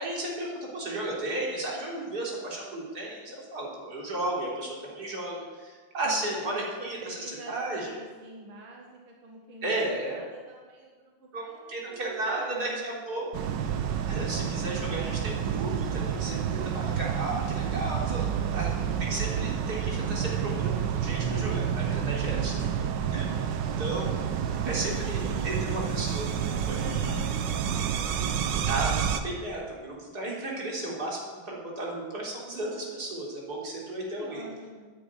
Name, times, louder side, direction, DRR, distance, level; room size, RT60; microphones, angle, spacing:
voice 1, 0.0-8.0 9.6-10.2 11.3-13.2 14.1-18.3 18.5-18.7 19.0-22.5 23.1-23.3 23.6-24.4 24.7-27.1 28.7-34.4, right 2 dB, 50° right, -4 dB, 3.9 m, -34 dB
voice 2, 6.0-12.8 18.0-19.1 22.4-22.9 24.4-25.8 26.5-28.0 34.1-34.9, right 2 dB, 85° right, -1 dB, 2.5 m, -45 dB
sound 1, 13.3-29.2, right 8 dB, 65° right, 1.4 m, -29 dB
10.5 x 10.0 x 9.0 m, 1.5 s
omnidirectional pair, 2.3 m